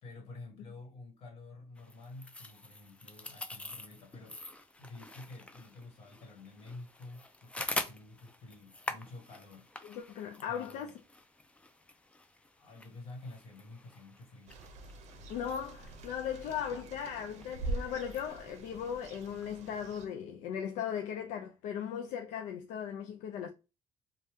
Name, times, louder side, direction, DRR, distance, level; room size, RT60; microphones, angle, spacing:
voice 1, 0.0-4.4 4.8-9.7 10.5-10.9 12.6-14.6, left 2 dB, 50° left, 1.6 m, -50 dB
sound 1, 1.8-20.0, left 2 dB, 10° left, 0.4 m, -46 dB
voice 2, 9.8-10.9 15.3-23.5, left 8 dB, 80° left, 0.4 m, -38 dB
sound 2, 14.5-20.1, right 2 dB, 65° right, 0.6 m, -43 dB
2.7 x 2.3 x 3.4 m
cardioid pair, 135°, 12 cm